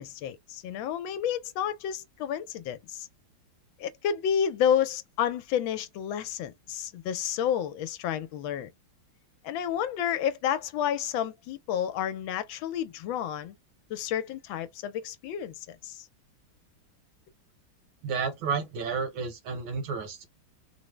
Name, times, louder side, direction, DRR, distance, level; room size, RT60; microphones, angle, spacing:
voice 1, 0.0-3.1 3.8-8.7 9.4-13.5 13.9-16.1, left 9 dB, 80° left, 1.3 m, -30 dB
voice 2, 18.0-20.3, right 5 dB, 80° right, 1.7 m, -31 dB
3.6 x 2.0 x 3.1 m
omnidirectional pair, 2.2 m